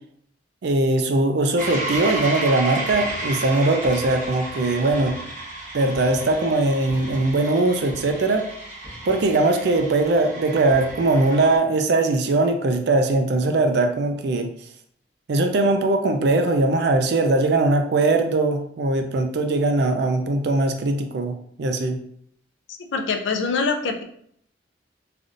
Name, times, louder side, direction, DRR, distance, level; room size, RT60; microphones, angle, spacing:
voice 1, 0.6-5.2 5.7-8.5 9.1-14.5 15.3-22.0, right 2 dB, 60° right, 6 dB, 0.4 m, -20 dB
sound 1, 1.6-11.6, right 2 dB, 40° right, 1.2 m, -33 dB
voice 2, 22.9-24.0, left 4 dB, 70° left, 5 dB, 0.4 m, -24 dB
3.3 x 2.5 x 2.5 m, 0.66 s
head